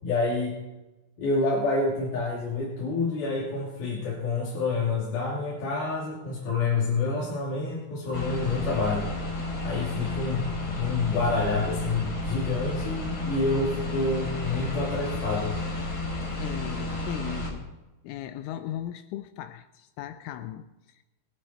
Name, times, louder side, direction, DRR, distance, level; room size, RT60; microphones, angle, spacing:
voice 1, 0.0-0.5 1.2-9.1 9.6-15.6, left 3 dB, 55° left, -6 dB, 4.1 m, -28 dB
sound 1, 8.1-17.5, left 2 dB, 25° left, 4.2 m, -32 dB
voice 2, 16.2-17.7 18.0-21.0, left 11 dB, 85° left, 10 dB, 3.0 m, -38 dB
23.0 x 9.9 x 4.4 m, 1.0 s
omnidirectional pair, 5.7 m